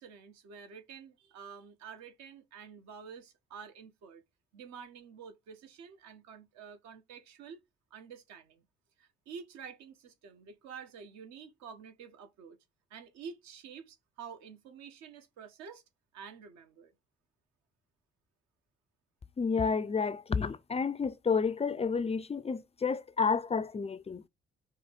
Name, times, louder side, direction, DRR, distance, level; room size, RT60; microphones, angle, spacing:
voice 1, 0.0-4.2 4.5-7.6 7.9-8.6 9.0-12.6 12.9-15.8 16.1-16.9, right 6 dB, 60° right, 1.3 m, -49 dB
voice 2, 19.4-24.2, left 5 dB, 20° left, 0.5 m, -30 dB
5.5 x 3.3 x 5.2 m
figure-of-eight pair, 40°, 30 cm